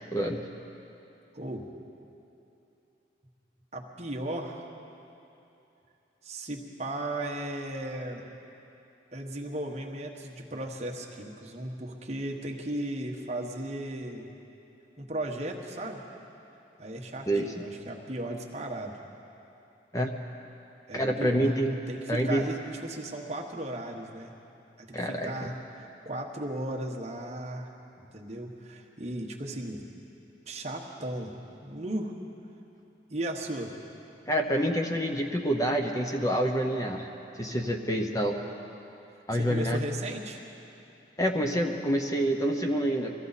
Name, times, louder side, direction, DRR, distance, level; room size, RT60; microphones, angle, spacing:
voice 1, 0.1-0.4 17.3-17.5 19.9-20.1 20.9-21.8 22.1-22.4 24.9-25.5 34.3-37.1 37.3-38.4 39.3-39.8 41.2-43.1, equal, 20° left, 3 dB, 0.7 m, -27 dB
voice 2, 1.3-1.7 3.7-4.7 6.2-8.2 9.1-14.3 15.0-16.0 16.8-19.0 20.9-21.5 21.9-24.3 24.8-27.7 28.0-29.8 30.5-31.3 31.6-32.2 33.1-33.8 39.3-40.4, right 1 dB, 35° right, 1 dB, 1.2 m, -36 dB
23.0 x 14.5 x 4.1 m, 2.9 s
head